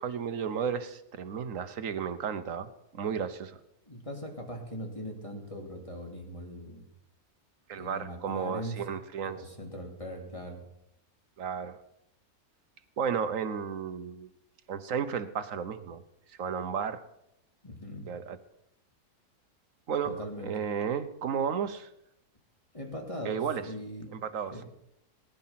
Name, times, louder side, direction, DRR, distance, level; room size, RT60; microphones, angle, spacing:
voice 1, 0.0-3.6 7.7-9.4 11.4-11.8 13.0-14.3 14.7-16.0 16.4-17.0 18.1-18.4 19.9-21.9 23.2-23.7 24.1-24.6, right 7 dB, 60° right, 10 dB, 1.4 m, -33 dB
voice 2, 3.9-6.8 7.7-8.8 9.2-10.6 17.6-18.1 20.0-20.5 22.7-24.1 24.5-24.7, equal, 20° left, 1 dB, 2.9 m, -40 dB
20.0 x 10.5 x 5.9 m, 0.82 s
omnidirectional pair, 1.7 m